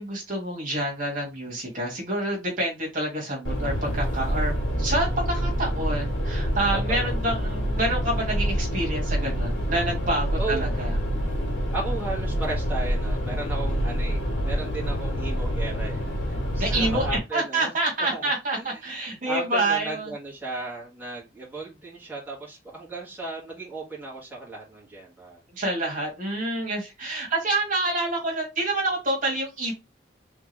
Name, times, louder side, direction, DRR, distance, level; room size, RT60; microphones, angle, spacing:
voice 1, 0.0-4.5 4.8-11.0 16.6-20.1 25.5-29.7, right 1 dB, 45° right, -1 dB, 1.9 m, -27 dB
sound 1, 3.4-17.2, equal, 85° left, 2.0 m, -27 dB
voice 2, 6.7-7.1 10.4-10.7 11.7-16.0 16.3-17.7 18.0-18.8 19.2-25.4, right 2 dB, 10° right, -5 dB, 1.8 m, -35 dB
3.6 x 3.6 x 3.2 m, 0.24 s
head